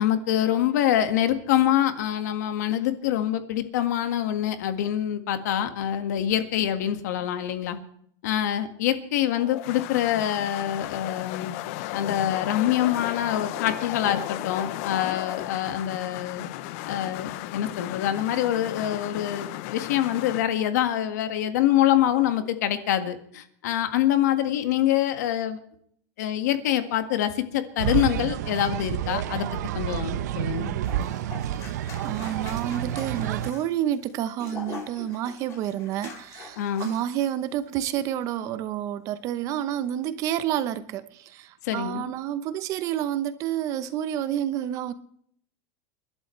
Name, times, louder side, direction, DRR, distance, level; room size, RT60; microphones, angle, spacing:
voice 1, 0.0-7.8 8.2-11.5 11.9-16.4 16.9-25.6 26.2-29.5 29.7-30.7 36.6-36.9 41.6-42.1, left 11 dB, 80° left, 1.8 m, -25 dB
sound 1, 9.4-20.4, left 16 dB, 55° left, 0.6 m, -34 dB
sound 2, 27.8-33.5, right 11 dB, 85° right, 0.9 m, -29 dB
sound 3, 30.8-37.3 37.7-37.8, left 4 dB, 35° left, 4.5 m, -43 dB
voice 2, 32.0-44.9, right 11 dB, 35° right, 0.9 m, -29 dB
29.5 x 11.5 x 3.3 m
supercardioid pair, 160°, 9 cm